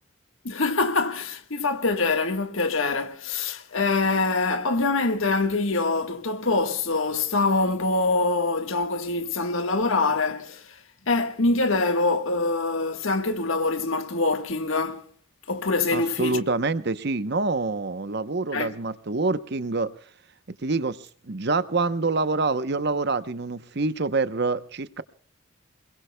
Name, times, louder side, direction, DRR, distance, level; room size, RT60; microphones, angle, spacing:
voice 1, 0.4-10.8 11.1-15.1 15.5-16.4 18.5-18.7, left 3 dB, 70° left, 1.4 m, -24 dB
voice 2, 15.9-19.9 20.6-25.0, right 3 dB, 50° right, 0.8 m, -26 dB
27.5 x 21.5 x 2.2 m
head